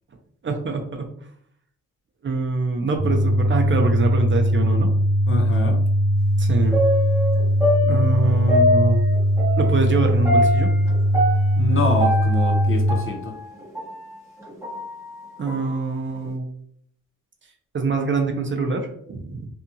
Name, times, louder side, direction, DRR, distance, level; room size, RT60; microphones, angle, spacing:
voice 1, 0.4-1.1 2.2-4.9 6.4-6.8 7.8-9.0 9.6-10.7 15.4-16.5 17.7-19.5, right 3 dB, 40° right, 4 dB, 0.5 m, -24 dB
sound 1, 3.0-13.0, equal, 55° right, 0.9 m, -20 dB
voice 2, 5.3-5.8 11.6-13.3, left 2 dB, 40° left, 3 dB, 0.6 m, -25 dB
sound 2, 6.7-14.0 14.4-15.7 16.2-16.3, left 1 dB, 10° right, 0.9 m, -24 dB
2.8 x 2.3 x 2.6 m, 0.65 s
cardioid pair, 85°, 32 cm